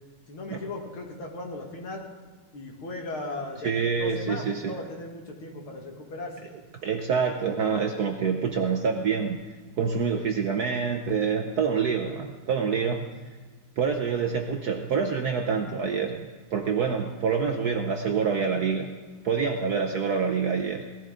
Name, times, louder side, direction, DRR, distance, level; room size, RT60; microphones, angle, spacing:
voice 1, 0.3-2.1 2.5-6.4, left 2 dB, 70° left, 1 dB, 2.5 m, -37 dB
voice 2, 3.6-4.8 6.8-13.3 13.8-16.3 16.5-18.9 19.2-20.8, right 6 dB, 65° right, 4 dB, 1.0 m, -26 dB
18.0 x 14.0 x 3.7 m, 1.4 s
omnidirectional pair, 2.4 m